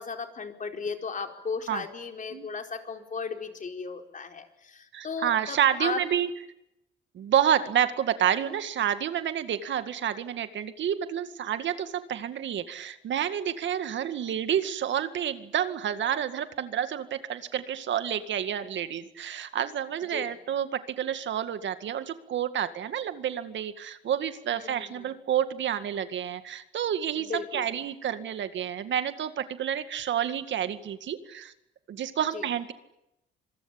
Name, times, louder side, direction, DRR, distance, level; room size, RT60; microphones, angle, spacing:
voice 1, 0.0-6.0 20.1-20.4 24.5-25.1 27.2-27.7 32.3-32.5, left 5 dB, 40° left, 4 dB, 4.6 m, -36 dB
voice 2, 4.9-6.3 7.1-31.5 31.9-32.7, right 9 dB, 70° right, 10 dB, 2.1 m, -29 dB
26.0 x 22.5 x 8.8 m, 0.86 s
cardioid pair, 90°, 20 cm